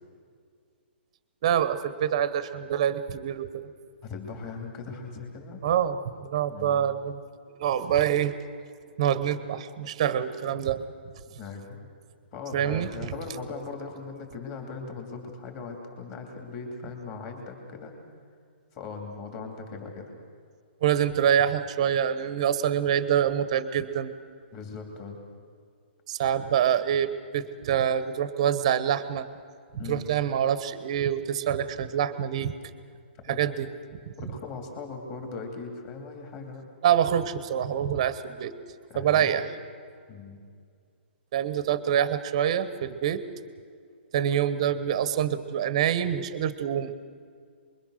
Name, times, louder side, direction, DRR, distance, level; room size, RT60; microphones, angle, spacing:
voice 1, 1.4-3.7 5.6-7.2 7.6-8.3 9.0-10.8 12.5-12.9 20.8-24.1 26.1-29.3 29.9-32.5 33.3-33.7 36.8-38.5 38.9-39.5 41.3-43.2 44.1-46.9, right 9 dB, 30° right, 13 dB, 1.0 m, -26 dB
voice 2, 4.0-5.6 6.5-7.0 11.4-11.8 12.3-18.0 18.7-20.1 24.5-25.2 29.8-30.0 33.3-33.4 34.2-36.7 38.9-39.4 40.1-40.4, left 4 dB, 20° left, 2 dB, 2.8 m, -39 dB
28.0 x 22.0 x 6.5 m, 2.1 s
hypercardioid pair, 180°, 6 cm